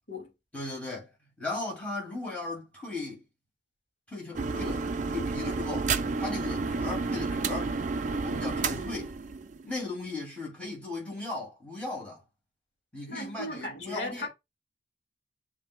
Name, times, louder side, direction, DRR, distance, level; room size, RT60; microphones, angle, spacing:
voice 1, 0.5-1.1 1.4-3.2 4.1-7.8 8.2-9.2 9.6-12.2 12.9-14.3, left 2 dB, 5° left, 2.3 m, -37 dB
sound 1, 4.3-9.8, right 4 dB, 40° right, 0.4 m, -31 dB
voice 2, 13.1-14.3, left 1 dB, 70° left, 1.9 m, -36 dB
7.2 x 3.2 x 2.2 m
head